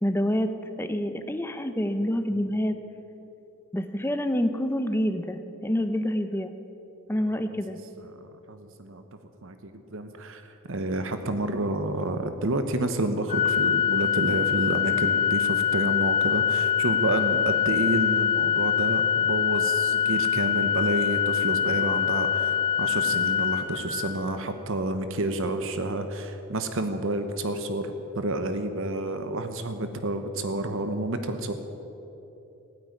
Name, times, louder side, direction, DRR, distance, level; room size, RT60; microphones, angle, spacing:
voice 1, 0.0-2.7 3.7-6.5 7.1-7.8, equal, 10° left, 8 dB, 0.8 m, -27 dB
voice 2, 8.2-9.0 9.4-31.5, right 2 dB, 60° right, 8 dB, 1.0 m, -29 dB
Organ, 13.3-24.3, left 8 dB, 35° left, 1.3 m, -24 dB
16.0 x 9.6 x 9.5 m, 3.0 s
head